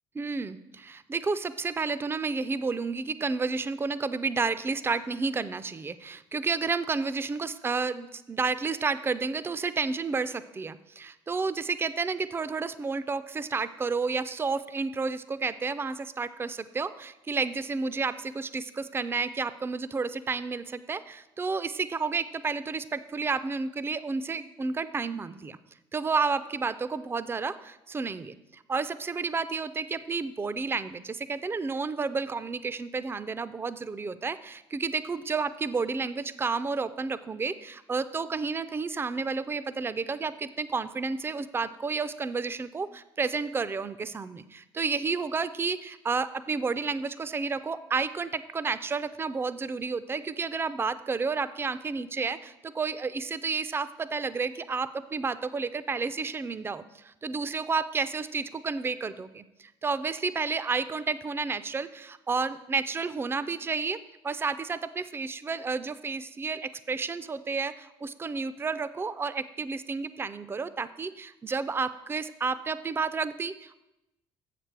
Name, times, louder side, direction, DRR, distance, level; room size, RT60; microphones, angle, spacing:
voice 1, 0.2-25.6 25.9-64.0 64.2-73.8, right 4 dB, 20° right, 14 dB, 0.4 m, -31 dB
7.3 x 6.7 x 4.6 m, 0.94 s
hypercardioid pair, 60°, 12 cm